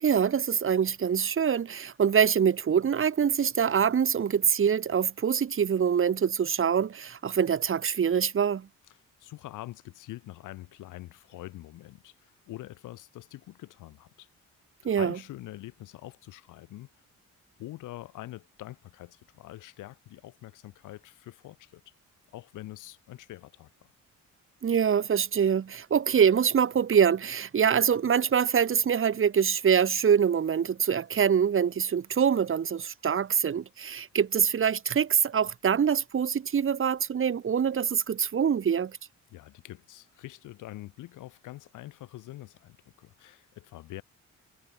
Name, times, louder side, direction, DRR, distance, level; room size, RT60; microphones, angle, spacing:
voice 1, 0.0-8.7 14.9-15.2 24.6-39.0, right 7 dB, 45° right, 1.8 m, -24 dB
voice 2, 9.2-14.3 14.8-16.9 17.6-21.8 22.3-23.7 39.3-44.0, left 16 dB, 90° left, 7.0 m, -45 dB
cardioid pair, 90°, 30 cm